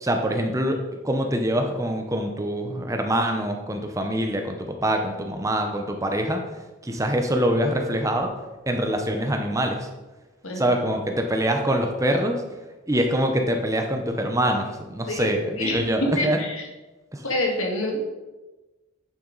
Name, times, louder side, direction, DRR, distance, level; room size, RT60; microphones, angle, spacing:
voice 1, 0.0-6.4 6.8-8.3 8.7-9.9 10.5-12.4 12.9-16.4 17.1-17.3, right 1 dB, 15° right, 4 dB, 0.7 m, -24 dB
voice 2, 15.1-16.6 17.2-18.0, left 1 dB, 80° left, 1 dB, 1.8 m, -27 dB
8.9 x 7.0 x 4.0 m, 1.1 s
head